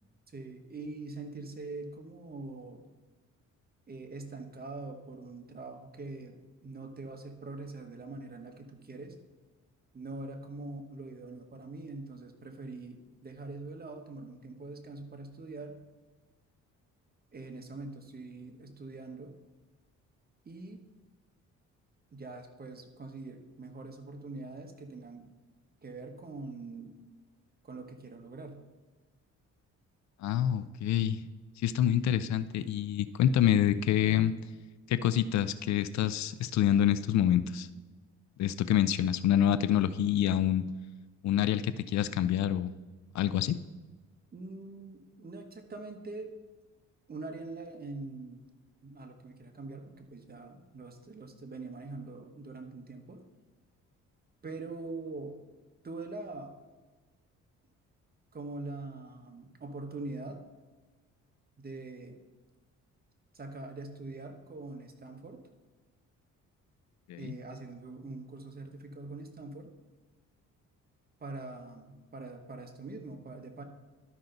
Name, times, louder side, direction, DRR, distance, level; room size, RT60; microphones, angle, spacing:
voice 1, 0.3-2.9 3.9-9.1 9.9-15.7 17.3-19.3 20.4-20.8 22.1-25.3 25.8-27.0 27.6-28.6 44.3-46.3 47.1-48.4 48.8-53.2 54.4-55.4 55.8-56.5 58.3-60.4 61.6-62.2 63.3-65.4 67.2-69.7 71.2-73.6, right 3 dB, 30° right, 5 dB, 1.2 m, -43 dB
voice 2, 30.2-31.2 31.6-34.4 34.9-37.7 38.4-40.6 41.2-42.7 43.1-43.6 67.1-67.3, left 10 dB, 65° left, 14 dB, 0.5 m, -27 dB
12.0 x 5.7 x 3.9 m, 1.2 s
cardioid pair, 90°, 30 cm